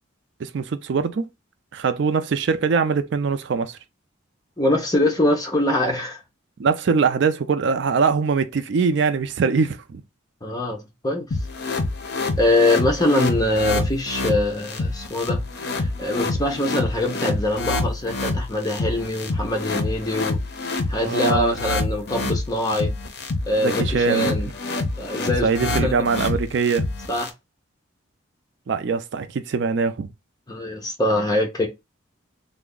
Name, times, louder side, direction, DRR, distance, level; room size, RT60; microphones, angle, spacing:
voice 1, 0.4-1.2 1.7-3.8 6.6-10.0 21.0-21.6 23.6-24.3 25.4-26.9 28.7-30.1, right 5 dB, 60° right, 0.4 m, -22 dB
voice 2, 4.6-6.2 10.4-11.3 12.4-15.4 16.0-20.4 20.9-22.9 23.5-24.5 25.0-25.5 25.8-26.0 27.1-27.3 30.5-31.7, left 1 dB, 20° left, 0.8 m, -23 dB
sound 1, 11.3-27.3, left 2 dB, 55° left, 0.6 m, -27 dB
3.4 x 2.1 x 3.7 m
head